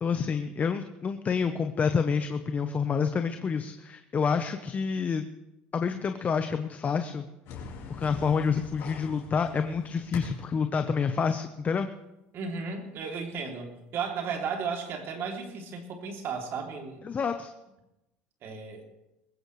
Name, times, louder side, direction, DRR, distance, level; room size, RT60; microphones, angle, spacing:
voice 1, 0.0-5.2 5.7-7.2 8.0-11.9 17.0-17.5, left 6 dB, 30° left, 8 dB, 0.9 m, -28 dB
sound 1, 7.4-10.7, left 4 dB, 60° left, 4.0 m, -42 dB
voice 2, 12.3-17.0 18.4-18.8, right 5 dB, 50° right, 2 dB, 3.0 m, -34 dB
20.5 x 15.5 x 3.3 m, 0.95 s
supercardioid pair, 85°, 5 cm